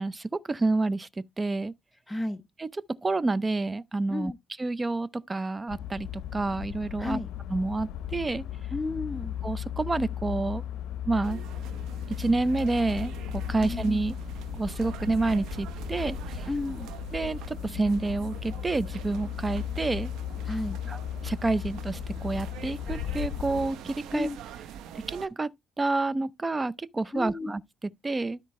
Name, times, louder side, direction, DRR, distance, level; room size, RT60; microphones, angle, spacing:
voice 1, 0.0-1.7 2.6-2.7 3.0-4.3 4.6-7.2 7.5-8.4 9.4-10.6 11.1-11.4 12.2-14.2 14.6-16.5 17.1-20.1 20.9-24.3 24.9-25.5 25.8-28.4, right 3 dB, 25° right, 0.6 m, -29 dB
voice 2, 2.1-2.4 4.1-4.4 7.0-7.3 8.7-9.4 13.6-13.8 16.5-16.9 20.4-20.8 24.1-24.4 27.1-27.5, left 2 dB, 10° left, 0.8 m, -32 dB
sound 1, 5.7-23.7, left 11 dB, 85° left, 0.6 m, -36 dB
sound 2, 11.2-25.3, right 7 dB, 90° right, 0.9 m, -43 dB
13.0 x 4.5 x 3.2 m
cardioid pair, 90°, 0 cm